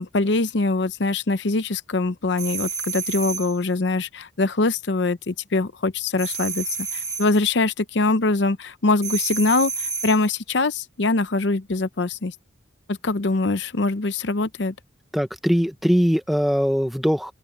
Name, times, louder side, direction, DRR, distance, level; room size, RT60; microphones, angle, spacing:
voice 1, 0.0-12.3 12.9-14.7, left 3 dB, 65° left, 0.7 m, -23 dB
sound 1, 2.4-3.6 6.2-7.4 9.0-10.3, right 5 dB, 15° right, 1.8 m, -30 dB
voice 2, 15.1-17.3, equal, ahead, 1.0 m, -21 dB
head